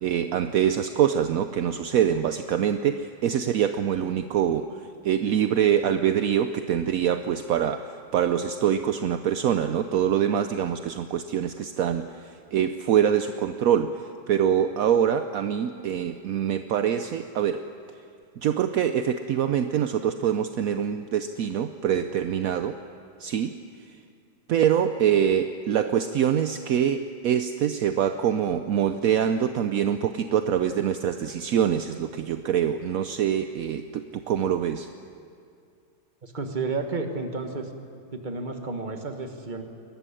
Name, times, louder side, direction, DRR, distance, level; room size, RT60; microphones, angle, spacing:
voice 1, 0.0-4.6 5.0-17.6 18.4-22.8 23.2-23.6 24.5-34.9, right 9 dB, 65° right, 9 dB, 0.8 m, -24 dB
voice 2, 36.2-37.7 38.1-39.6, right 3 dB, 25° right, 5 dB, 1.5 m, -31 dB
21.5 x 14.0 x 9.9 m, 2.4 s
omnidirectional pair, 2.1 m